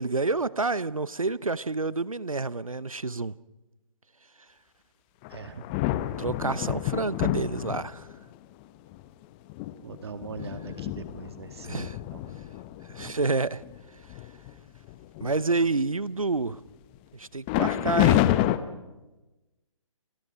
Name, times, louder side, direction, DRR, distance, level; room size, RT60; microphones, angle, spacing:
voice 1, 0.0-3.3 6.2-8.1 11.6-12.0 12.9-13.6 15.2-16.6 17.1-18.3, right 3 dB, 90° right, 20 dB, 0.7 m, -28 dB
sound 1, 5.2-8.2 8.9-9.0 9.5-13.1 13.6-13.8 14.1-14.5 14.9-15.7 17.5-18.6, left 14 dB, 15° left, 0.7 m, -28 dB
voice 2, 5.3-5.7 9.8-12.4, right 5 dB, 50° right, 9 dB, 1.8 m, -41 dB
29.5 x 26.0 x 5.1 m, 1.1 s
figure-of-eight pair, 140°, 17 cm